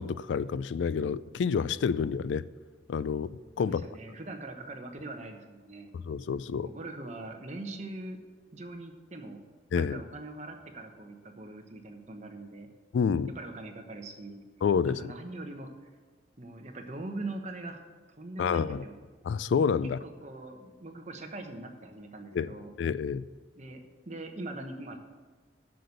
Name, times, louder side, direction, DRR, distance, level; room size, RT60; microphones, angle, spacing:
voice 1, 0.0-2.5 2.9-3.8 5.9-6.7 9.7-10.0 12.9-13.3 14.6-15.1 18.4-18.8 19.2-20.0 22.3-22.5 22.8-23.2, left 6 dB, 75° left, 0.3 m, -28 dB
voice 2, 3.6-5.9 6.6-8.2 8.5-9.4 9.7-12.7 13.3-14.4 14.9-15.7 16.4-17.8 18.2-18.9 20.0-22.7 23.5-25.0, right 2 dB, 40° right, 1.1 m, -42 dB
7.6 x 6.9 x 7.9 m
head